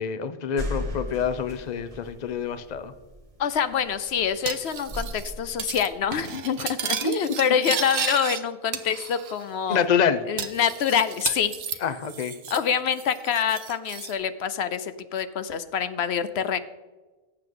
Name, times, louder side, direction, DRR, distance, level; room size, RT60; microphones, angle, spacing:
voice 1, 0.0-2.9 7.0-7.2 9.7-10.2 11.8-12.3, left 7 dB, 45° left, 11 dB, 0.8 m, -26 dB
sound 1, 0.6-6.1, left 1 dB, 35° right, 1.4 m, -37 dB
voice 2, 3.4-9.8 10.3-11.8 12.5-16.6, left 8 dB, 80° left, 12 dB, 0.9 m, -26 dB
Cutlery silverware, 4.5-5.3 5.6-5.9 6.1-8.4 8.7-9.4 9.7-9.8 10.4-12.7 13.0-14.1, right 8 dB, 75° right, 1.0 m, -33 dB
18.0 x 7.8 x 3.8 m, 1.2 s
omnidirectional pair, 1.1 m